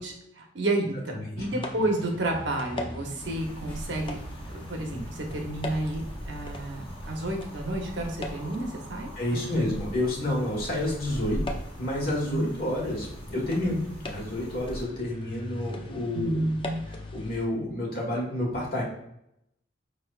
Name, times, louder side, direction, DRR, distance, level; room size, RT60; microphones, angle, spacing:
voice 1, 0.0-4.2 4.5-9.7 12.3-12.4 13.6-13.7 16.1-16.8, right 2 dB, 70° right, 2 dB, 0.8 m, -31 dB
sound 1, 1.4-17.5, left 1 dB, 25° left, 0.4 m, -42 dB
sound 2, 3.2-14.9, right 1 dB, 10° left, 1.2 m, -41 dB
voice 2, 9.2-11.4 11.8-16.4 16.9-18.8, left 1 dB, 50° left, -2 dB, 1.4 m, -29 dB
5.1 x 3.2 x 2.4 m, 0.78 s
head